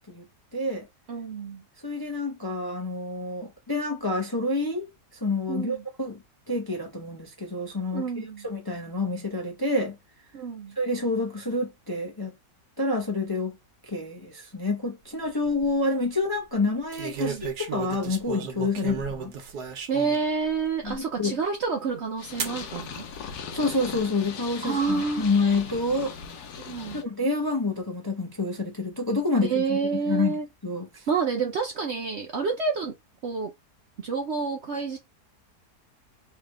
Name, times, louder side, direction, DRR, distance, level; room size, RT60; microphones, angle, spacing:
voice 1, 0.5-0.9 1.8-10.0 10.8-12.3 12.8-13.6 13.8-19.3 20.8-21.4 23.5-26.2 26.9-31.1, left 2 dB, 20° left, 0.6 m, -28 dB
voice 2, 1.1-1.6 5.5-5.8 7.9-8.5 10.3-10.8 17.2-17.4 19.9-23.1 24.6-25.3 26.6-27.0 29.4-30.5 31.1-32.9 33.2-33.5 34.0-35.0, right 5 dB, 60° right, 0.7 m, -28 dB
sound 1, 15.2-15.7 16.9-20.3 20.9-21.0 22.4-22.6 23.5-24.0, right 6 dB, 75° right, 1.4 m, -34 dB
Purr, 22.2-27.0, left 6 dB, 75° left, 1.2 m, -39 dB
3.4 x 2.8 x 3.5 m
omnidirectional pair, 1.7 m